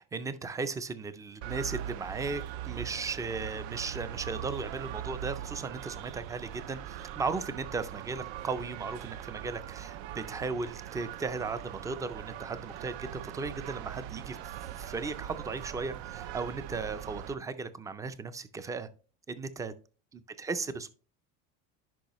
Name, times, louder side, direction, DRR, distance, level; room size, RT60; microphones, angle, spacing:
voice 1, 0.0-18.9 19.3-19.7 20.1-20.9, right 4 dB, 10° right, 13 dB, 0.3 m, -36 dB
sound 1, 1.4-17.3, right 11 dB, 85° right, 0.6 m, -41 dB
10.5 x 5.4 x 2.9 m, 0.37 s
cardioid pair, 155°, 33 cm